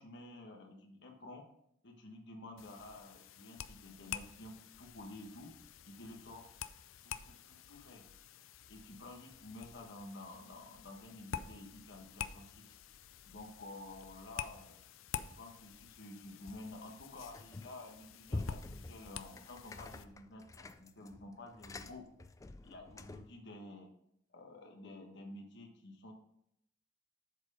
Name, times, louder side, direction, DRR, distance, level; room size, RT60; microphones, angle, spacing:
voice 1, 0.0-1.4 1.8-5.5 5.8-6.5 7.0-8.0 8.7-12.7 13.3-14.8 15.2-22.1 22.6-23.9 24.3-26.1, left 2 dB, 60° left, 3 dB, 1.3 m, -51 dB
sound 1, 2.6-20.1, left 8 dB, 80° left, 0.5 m, -49 dB
sound 2, 17.3-17.9 18.3-23.4, left 2 dB, 15° left, 0.3 m, -46 dB
8.0 x 4.4 x 5.4 m, 0.76 s
head